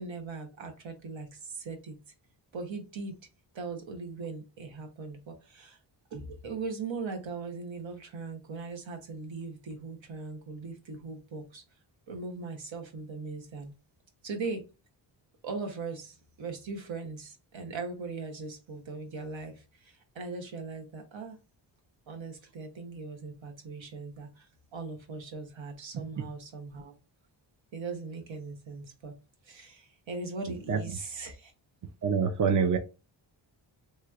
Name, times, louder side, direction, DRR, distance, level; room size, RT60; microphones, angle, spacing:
voice 1, 0.0-2.0 2.5-3.2 3.5-5.8 6.1-11.6 12.1-13.7 14.2-14.7 15.4-21.4 22.1-27.0 27.7-29.2 29.4-31.5, right 4 dB, 70° right, 1.1 m, -39 dB
voice 2, 32.0-32.8, right 6 dB, 40° right, 0.5 m, -25 dB
3.2 x 3.1 x 2.4 m
cardioid pair, 90°, 47 cm